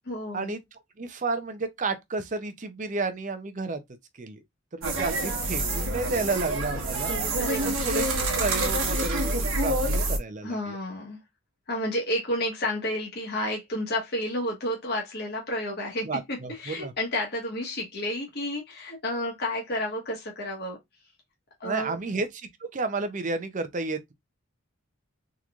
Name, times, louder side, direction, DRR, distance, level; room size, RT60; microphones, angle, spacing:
voice 1, 0.0-0.5 7.4-7.8 10.4-11.2 11.7-20.8 21.6-22.0, left 1 dB, 50° left, 1.1 m, -31 dB
voice 2, 1.0-3.8 4.2-4.4 4.7-7.2 7.6-10.8 16.0-16.9 21.6-24.1, right 3 dB, 35° right, 0.5 m, -31 dB
sound 1, 4.8-10.2, right 2 dB, 80° right, 1.2 m, -27 dB
3.8 x 3.0 x 2.4 m
head